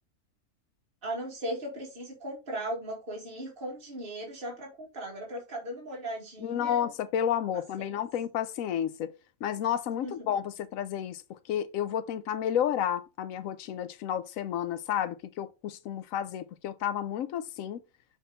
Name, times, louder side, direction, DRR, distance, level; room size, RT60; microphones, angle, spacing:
voice 1, 1.0-6.8 7.5-8.0 10.0-10.3, right 1 dB, 45° right, 2.3 m, -38 dB
voice 2, 6.4-9.1 9.4-17.8, left 9 dB, 90° left, 1.0 m, -31 dB
7.1 x 3.7 x 4.0 m
omnidirectional pair, 1.4 m